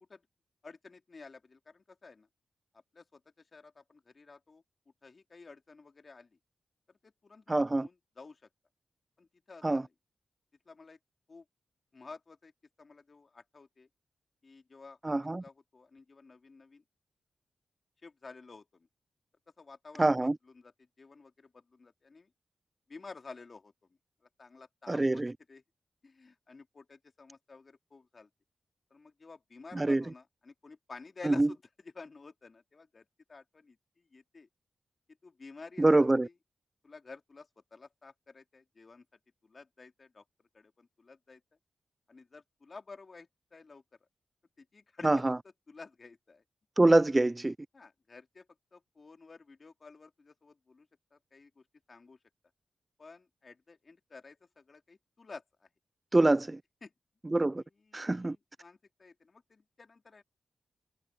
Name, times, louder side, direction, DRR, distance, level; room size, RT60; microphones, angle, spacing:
voice 1, 0.6-2.3 2.7-4.6 5.0-6.4 6.9-8.5 9.2-9.9 10.6-11.0 11.3-11.4 11.9-12.5 12.8-13.9 14.4-15.1 15.4-16.8 18.0-18.9 19.6-22.3 22.9-24.0 24.4-25.2 25.5-25.6 26.0-28.3 28.9-34.5 35.2-35.9 36.2-36.3 36.8-39.0 39.4-40.2 40.5-41.4 42.1-43.8 44.6-45.2 45.7-46.4 47.7-52.2 53.0-55.7 56.8-56.9 57.8-60.2, left 4 dB, 45° left, 2.8 m, -52 dB
voice 2, 7.5-7.9 9.6-9.8 15.0-15.4 20.0-20.3 24.9-25.3 29.7-30.0 31.2-31.5 35.8-36.3 45.0-45.4 46.8-47.6 56.1-56.6 57.3-57.6 57.9-58.4, right 2 dB, 20° right, 0.4 m, -25 dB
cardioid pair, 80°, 0 cm